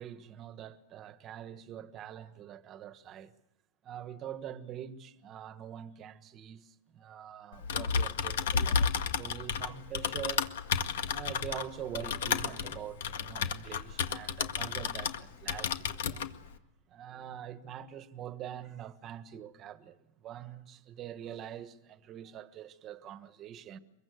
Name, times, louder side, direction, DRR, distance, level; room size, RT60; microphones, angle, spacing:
voice 1, 0.0-3.3 3.8-8.9 9.2-10.5 11.1-16.3 16.9-23.8, right 10 dB, 25° right, 1.3 m, -44 dB
Typing, 7.5-15.2 15.5-16.3, left 6 dB, 80° left, 1.8 m, -32 dB
25.0 x 22.5 x 7.9 m
supercardioid pair, 160°, 0 cm